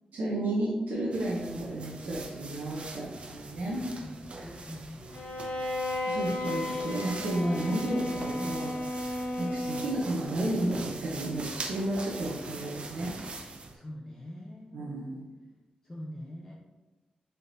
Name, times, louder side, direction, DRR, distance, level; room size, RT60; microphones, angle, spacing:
voice 1, 0.1-3.9 6.0-13.1 14.7-15.3, right 1 dB, 80° right, -5 dB, 0.7 m, -32 dB
sound 1, 1.1-13.8, right 3 dB, 45° right, 0.4 m, -43 dB
voice 2, 3.8-5.3 13.7-15.1 15.8-16.5, left 1 dB, 20° left, -4 dB, 0.5 m, -44 dB
Bowed string instrument, 5.1-10.2, left 1 dB, 85° left, 0.7 m, -34 dB
4.3 x 3.3 x 2.6 m, 1.1 s
wide cardioid pair, 135°, 3 cm